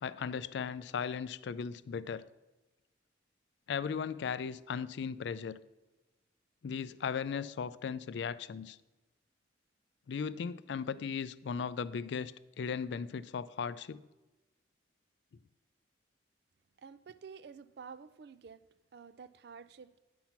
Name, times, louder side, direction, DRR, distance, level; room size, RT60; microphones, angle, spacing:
voice 1, 0.0-2.3 3.7-5.6 6.6-8.8 10.1-12.3 12.6-14.0, left 6 dB, 65° left, 0.3 m, -37 dB
voice 2, 16.8-18.7 18.9-20.0, right 6 dB, 60° right, 0.4 m, -50 dB
9.3 x 5.8 x 5.8 m
head